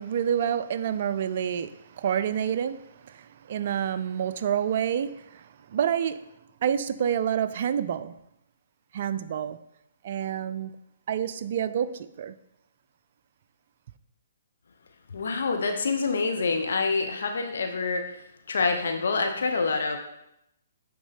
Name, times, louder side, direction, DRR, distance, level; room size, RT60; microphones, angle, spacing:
voice 1, 0.0-2.8 3.1-5.4 5.7-6.2 6.6-8.1 8.9-9.6 10.0-10.7 11.1-12.3, right 9 dB, 50° right, 0.4 m, -28 dB
voice 2, 15.1-18.0 18.5-20.0, left 4 dB, 70° left, 0.7 m, -26 dB
9.3 x 3.6 x 3.5 m
hypercardioid pair, 135°, 0 cm